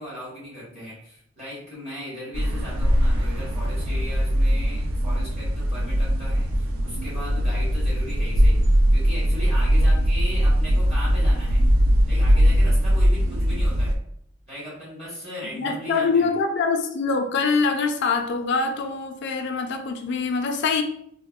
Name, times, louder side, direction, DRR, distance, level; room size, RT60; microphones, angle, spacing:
voice 1, 0.0-8.6 8.9-11.7 12.1-14.0 14.5-16.3, equal, 35° right, 1.1 m, -37 dB
sound 1, 2.3-14.0, equal, 85° right, 0.4 m, -20 dB
voice 2, 15.5-20.8, left 4 dB, 60° left, 0.4 m, -24 dB
3.4 x 2.0 x 2.3 m
head